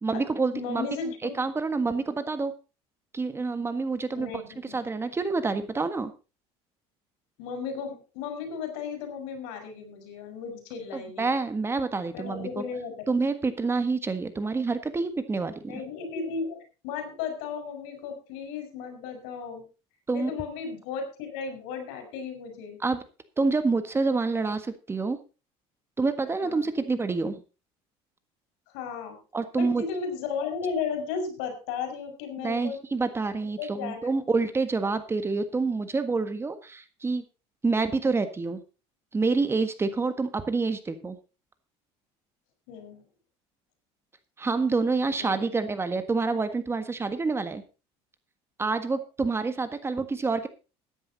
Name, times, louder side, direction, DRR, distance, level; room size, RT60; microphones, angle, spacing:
voice 1, 0.0-0.9 1.2-2.5 3.1-4.3 4.7-6.1 10.9-12.6 13.1-15.8 20.1-20.3 22.8-23.0 23.4-25.2 26.0-27.4 29.3-29.8 32.4-37.2 37.6-38.6 39.1-41.2 44.4-47.6 48.6-50.5, right 4 dB, 20° right, 10 dB, 1.5 m, -27 dB
voice 2, 0.5-1.4 4.2-4.8 7.4-11.3 12.1-12.9 15.7-19.7 20.1-22.8 26.4-26.7 28.7-29.2 29.5-32.8 33.6-34.2 37.6-37.9 42.7-43.0 45.1-45.5, left 5 dB, 80° left, 6 dB, 5.2 m, -35 dB
14.5 x 10.0 x 4.1 m, 0.31 s
cardioid pair, 115°, 13 cm